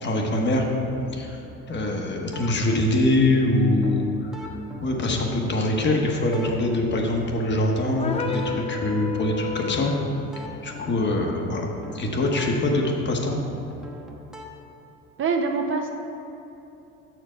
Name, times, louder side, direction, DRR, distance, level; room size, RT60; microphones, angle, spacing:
voice 1, 0.0-0.7 1.1-1.4 1.7-4.5 4.8-9.9 10.6-11.6 11.9-13.4, left 1 dB, 35° left, 1 dB, 1.0 m, -23 dB
sound 1, 0.5-14.5, left 2 dB, ahead, 0.9 m, -43 dB
sound 2, 8.0-10.2, left 5 dB, 20° left, 0.4 m, -32 dB
voice 2, 15.2-15.9, right 4 dB, 40° right, 4 dB, 0.6 m, -24 dB
6.8 x 4.6 x 4.9 m, 2.9 s
supercardioid pair, 95°, 32 cm